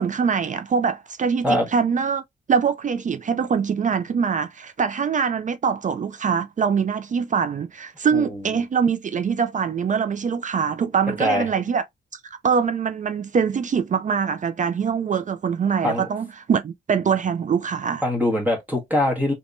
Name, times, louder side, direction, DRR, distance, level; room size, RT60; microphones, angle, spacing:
voice 1, 0.0-2.2 2.5-11.8 12.4-18.0, right 6 dB, 40° right, 0.4 m, -23 dB
voice 2, 18.0-19.3, left 1 dB, 10° right, 1.3 m, -22 dB
3.5 x 3.0 x 2.5 m
cardioid pair, 115°, 20 cm